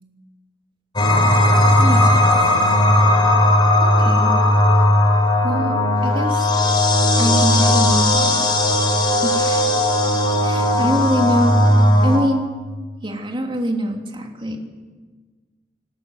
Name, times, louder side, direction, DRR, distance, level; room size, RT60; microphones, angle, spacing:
sound 1, 1.0-12.2, left 1 dB, 25° left, 4.7 m, -16 dB
voice 1, 1.8-2.2 3.8-4.3 5.4-6.5 7.2-8.5 9.2-9.8 10.4-12.5 13.0-14.6, right 1 dB, 30° right, 2 dB, 3.0 m, -24 dB
26.5 x 13.5 x 8.0 m, 1.4 s
head